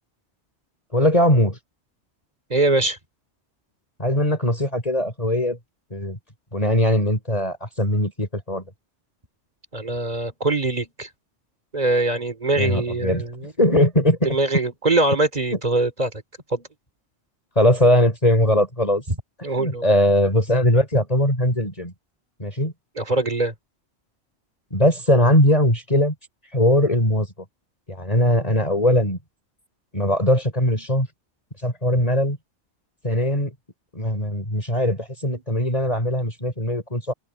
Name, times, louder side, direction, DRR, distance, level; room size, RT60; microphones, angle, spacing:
voice 1, 0.9-1.6 4.0-5.6 5.9-6.2 6.5-8.7 12.6-13.2 13.6-14.3 17.5-19.0 19.6-21.9 22.4-22.7 24.7-26.1 26.5-27.3 27.9-29.2 29.9-31.1 31.6-32.4 33.0-33.5 33.9-37.1, left 1 dB, 30° left, 5.0 m, -20 dB
voice 2, 2.5-3.0 9.7-11.1 11.7-13.5 14.2-16.1 16.5-16.7 19.4-19.8 23.0-23.5, right 2 dB, 35° right, 2.9 m, -22 dB
open air
omnidirectional pair, 1.2 m